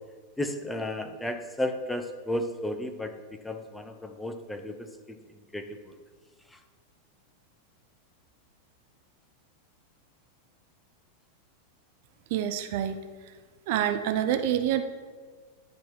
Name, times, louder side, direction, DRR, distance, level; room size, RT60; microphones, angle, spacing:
voice 1, 0.4-5.9 6.5-6.6, left 1 dB, 5° left, 6 dB, 0.6 m, -34 dB
voice 2, 12.3-13.0 13.3-13.4 13.7-14.8, right 10 dB, 50° right, 9 dB, 0.4 m, -27 dB
10.5 x 5.6 x 3.1 m, 1.5 s
figure-of-eight pair, 90°, 0 cm